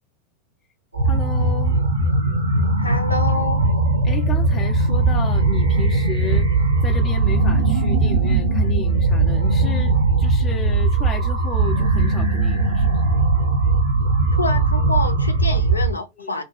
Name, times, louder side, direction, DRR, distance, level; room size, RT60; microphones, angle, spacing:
sound 1, 0.9-15.9, right 3 dB, 80° right, 0.6 m, -19 dB
voice 1, 1.0-1.8 4.0-6.5 6.8-13.0 16.2-16.4, left 5 dB, 25° left, 0.5 m, -33 dB
voice 2, 2.8-3.6 14.3-16.4, left 2 dB, 80° left, 0.5 m, -27 dB
2.6 x 2.2 x 2.9 m
figure-of-eight pair, 90°, 0 cm